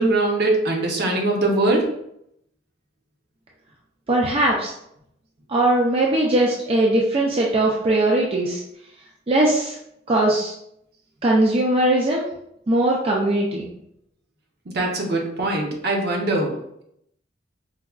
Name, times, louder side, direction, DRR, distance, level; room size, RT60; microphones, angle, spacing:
voice 1, 0.0-1.9 14.7-16.5, right 2 dB, 60° right, 0 dB, 0.7 m, -21 dB
voice 2, 4.1-4.7 5.5-8.6 9.3-9.8 10.1-10.5 11.2-12.3 12.7-13.7, right 1 dB, 30° right, -2 dB, 0.4 m, -20 dB
4.6 x 2.3 x 2.3 m, 0.75 s
head